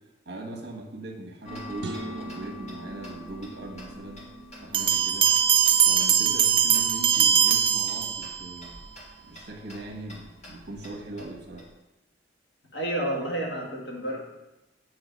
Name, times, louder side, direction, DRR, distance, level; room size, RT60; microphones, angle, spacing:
voice 1, 0.2-4.2 4.6-5.3 5.8-8.8 9.2-11.7, right 2 dB, 60° right, 0 dB, 1.2 m, -40 dB
Tick-tock, 1.4-11.7, equal, 40° left, 1.7 m, -45 dB
sound 1, 1.8-4.2, right 2 dB, 80° right, 0.5 m, -41 dB
Bell, 4.7-8.5, right 9 dB, 30° right, 0.3 m, -21 dB
voice 2, 12.7-14.2, right 1 dB, 75° left, -2 dB, 1.6 m, -30 dB
8.0 x 3.3 x 5.1 m, 0.98 s
head